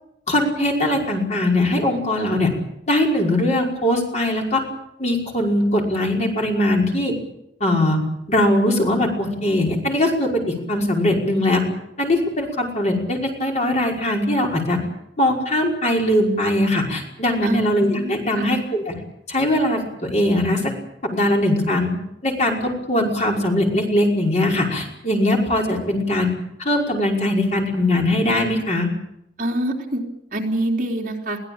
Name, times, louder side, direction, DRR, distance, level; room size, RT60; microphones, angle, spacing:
voice 1, 0.3-2.5 2.9-4.6 5.0-7.1 7.6-8.0 8.3-11.6 12.0-14.8 15.2-18.9 19.3-20.7 21.0-21.9 22.2-26.3 26.6-28.9, left 1 dB, 40° left, 0 dB, 5.5 m, -20 dB
voice 2, 17.4-18.6 29.4-30.0 30.3-31.4, right 1 dB, 50° right, 0 dB, 3.6 m, -26 dB
22.5 x 17.0 x 8.8 m, 0.79 s
head